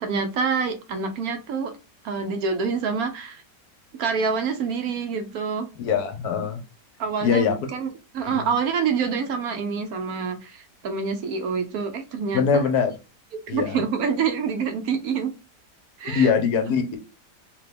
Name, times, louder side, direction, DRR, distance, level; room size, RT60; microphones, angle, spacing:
voice 1, 0.0-1.7 2.0-3.4 4.0-5.7 7.0-7.9 8.1-12.7 13.5-15.3 16.0-16.3, right 5 dB, 65° right, 6 dB, 1.0 m, -26 dB
voice 2, 5.8-6.6 7.2-7.6 8.3-8.5 12.3-12.9 13.5-13.8 16.1-17.0, left 6 dB, 70° left, 7 dB, 1.2 m, -22 dB
3.6 x 2.9 x 3.3 m, 0.30 s
omnidirectional pair, 1.8 m